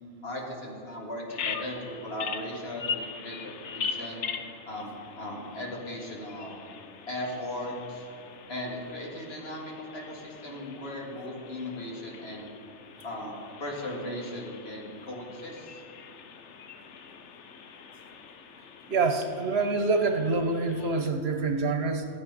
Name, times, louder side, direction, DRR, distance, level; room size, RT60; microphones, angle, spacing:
voice 1, 0.2-4.2 4.7-6.6 7.1-8.1 8.5-12.5 13.0-15.8, left 1 dB, 60° left, -1 dB, 2.1 m, -37 dB
Bird vocalization bird call bird song, 1.3-21.1, left 6 dB, 75° left, 1.1 m, -41 dB
voice 2, 18.9-22.1, right 3 dB, 60° right, 6 dB, 1.1 m, -26 dB
14.5 x 8.4 x 5.3 m, 2.5 s
omnidirectional pair, 1.2 m